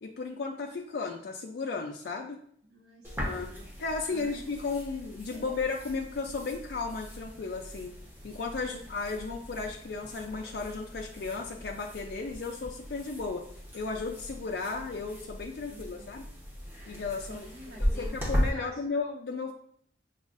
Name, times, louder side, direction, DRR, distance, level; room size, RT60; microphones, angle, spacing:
voice 1, 0.0-2.4 3.2-3.5 3.8-7.9 8.2-13.5 13.7-16.3 16.9-17.5 17.8-19.5, left 4 dB, 65° left, 1 dB, 0.4 m, -35 dB
voice 2, 2.7-3.7 4.1-5.0 5.3-5.6 8.8-8.9 15.7-16.1 17.3-18.9, left 1 dB, 75° right, -1 dB, 1.0 m, -49 dB
sound 1, 3.0-18.5, equal, 10° right, 0.8 m, -38 dB
6.1 x 2.4 x 2.5 m, 0.66 s
head